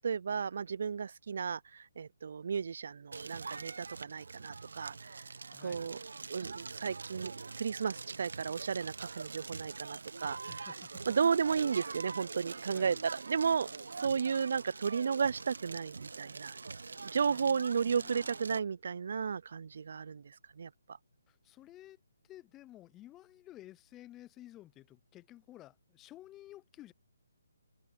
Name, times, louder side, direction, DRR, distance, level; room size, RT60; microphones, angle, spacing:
voice 1, 0.0-5.2 5.6-6.0 6.3-10.6 11.1-13.7 14.0-16.6 17.0-21.0, right 6 dB, 60° right, 0.3 m, -34 dB
Crackle, 3.1-18.6, right 4 dB, 85° right, 1.1 m, -44 dB
voice 2, 5.5-5.9 10.5-10.9 12.7-13.0 14.0-14.1 17.3-18.4 21.3-22.0 22.2-26.9, left 14 dB, 15° left, 0.4 m, -54 dB
open air
hypercardioid pair, 160°, 0 cm